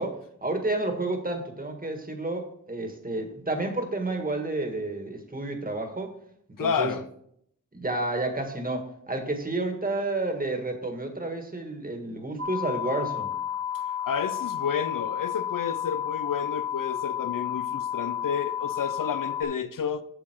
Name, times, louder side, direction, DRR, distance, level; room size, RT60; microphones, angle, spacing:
voice 1, 0.0-6.1 6.6-6.9 7.7-13.3, right 2 dB, 25° right, 1.7 m, -30 dB
voice 2, 6.6-7.0 13.7-20.0, left 7 dB, 80° left, 0.7 m, -31 dB
sound 1, 12.4-19.4, left 9 dB, 45° right, 1.2 m, -31 dB
8.0 x 7.7 x 4.5 m
wide cardioid pair, 80°, 32 cm